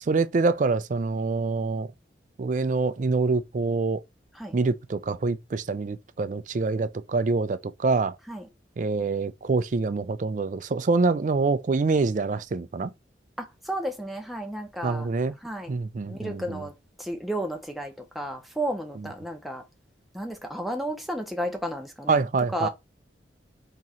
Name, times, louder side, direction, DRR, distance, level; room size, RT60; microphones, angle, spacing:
voice 1, 0.1-1.9 2.4-4.0 4.5-8.2 8.8-12.9 14.8-15.3 15.7-16.6 22.1-22.7, right 3 dB, 45° right, 0.4 m, -25 dB
voice 2, 13.4-15.1 15.4-15.7 16.1-19.6 20.1-22.2 22.5-22.7, right 1 dB, ahead, 0.7 m, -33 dB
3.7 x 3.0 x 4.1 m
head